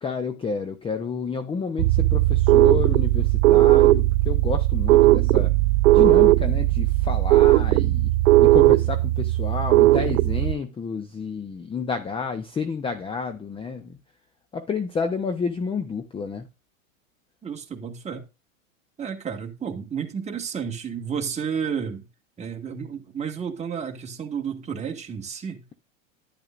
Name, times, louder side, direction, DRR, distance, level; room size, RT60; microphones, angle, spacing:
voice 1, 0.0-5.5 5.9-8.1 8.4-14.0 14.5-16.5, left 5 dB, 15° left, 0.7 m, -30 dB
sound 1, 1.8-10.6, right 17 dB, 65° right, 0.6 m, -17 dB
voice 2, 17.4-18.2 19.0-22.1 22.4-25.6, right 7 dB, 15° right, 1.8 m, -31 dB
10.5 x 10.5 x 2.5 m
hypercardioid pair, 115°, 40 cm